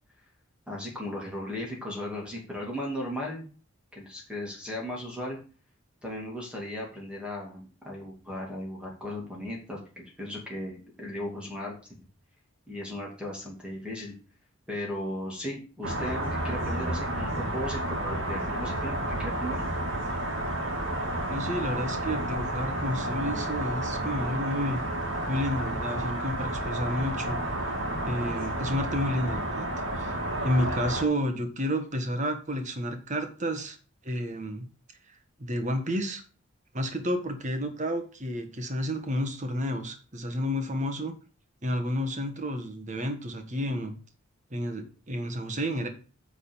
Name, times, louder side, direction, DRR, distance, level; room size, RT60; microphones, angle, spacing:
voice 1, 0.7-3.5 3.9-5.4 6.0-11.7 12.7-14.1 14.7-19.6, left 1 dB, 5° right, -2 dB, 2.6 m, -36 dB
sound 1, 15.8-31.0, right 1 dB, 60° right, 2.0 m, -31 dB
voice 2, 21.3-24.8 25.3-27.4 28.1-29.7 29.9-30.1 30.4-33.8 34.0-34.7 35.4-36.2 36.7-41.1 41.6-43.9 44.5-45.9, equal, 35° right, 6 dB, 1.5 m, -30 dB
9.4 x 4.0 x 7.1 m, 0.36 s
head